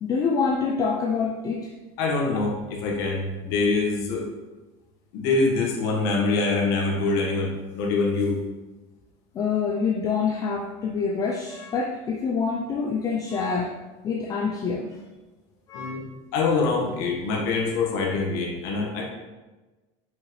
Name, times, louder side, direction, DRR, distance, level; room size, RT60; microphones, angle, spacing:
voice 1, 0.0-1.7 9.3-13.8 14.0-15.0 15.7-16.0, left 5 dB, 25° left, 0 dB, 0.4 m, -26 dB
voice 2, 2.0-4.3 5.1-8.4 15.7-16.0 16.3-19.0, left 3 dB, 70° left, -2 dB, 1.4 m, -24 dB
5.6 x 5.6 x 3.1 m, 1.2 s
cardioid pair, 160°, 14 cm